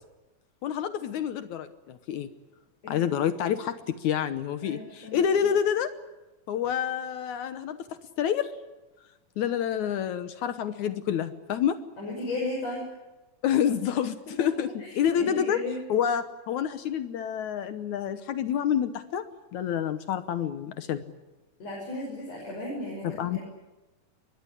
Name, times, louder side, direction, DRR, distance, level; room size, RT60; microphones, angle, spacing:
voice 1, 0.6-2.3 2.9-5.9 6.5-7.8 8.2-8.5 9.4-11.8 13.4-15.6 15.9-19.3 19.5-21.0 23.0-23.4, left 9 dB, 70° left, 11 dB, 2.3 m, -28 dB
voice 2, 4.6-5.5 12.0-12.8 14.8-15.8 21.6-23.4, left 2 dB, 50° left, -3 dB, 7.7 m, -35 dB
24.0 x 21.5 x 9.9 m, 1.1 s
omnidirectional pair, 3.7 m